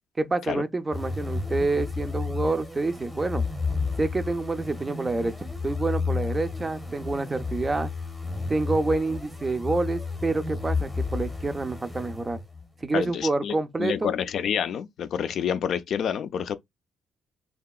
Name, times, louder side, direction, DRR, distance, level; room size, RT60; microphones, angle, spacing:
voice 1, 0.2-3.5 4.0-5.3 5.6-7.9 8.5-12.4 12.8-14.1, right 3 dB, 25° right, 0.4 m, -27 dB
sound 1, 0.9-12.7, left 4 dB, 10° left, 0.8 m, -32 dB
voice 2, 12.9-16.6, left 8 dB, 65° left, 0.3 m, -28 dB
2.8 x 2.3 x 2.3 m
cardioid pair, 90°, 0 cm